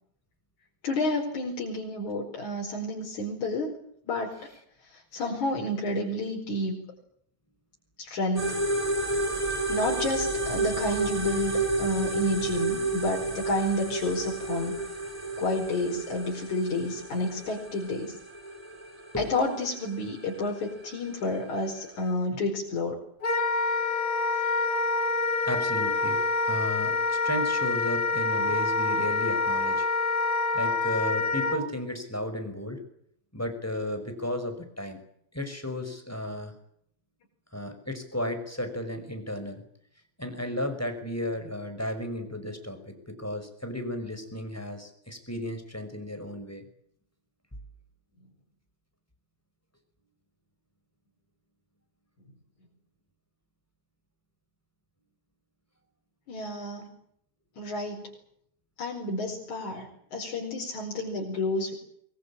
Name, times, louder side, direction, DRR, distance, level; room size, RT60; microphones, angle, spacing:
voice 1, 0.8-3.7 4.1-4.3 5.1-6.8 8.0-8.5 9.7-14.7 15.4-18.1 19.2-22.9 56.3-56.9 57.6-58.0 58.8-61.7, left 1 dB, 80° left, -1 dB, 6.0 m, -30 dB
sound 1, 8.4-22.1, right 2 dB, 10° right, 4.2 m, -31 dB
Wind instrument woodwind instrument, 23.2-31.6, left 3 dB, 35° left, 2.9 m, -26 dB
voice 2, 25.5-29.9 30.5-32.8 33.3-35.0 35.3-36.5 37.5-39.6 40.2-46.6, left 1 dB, 5° left, 7 dB, 5.5 m, -34 dB
23.5 x 21.5 x 8.8 m, 0.68 s
omnidirectional pair, 3.3 m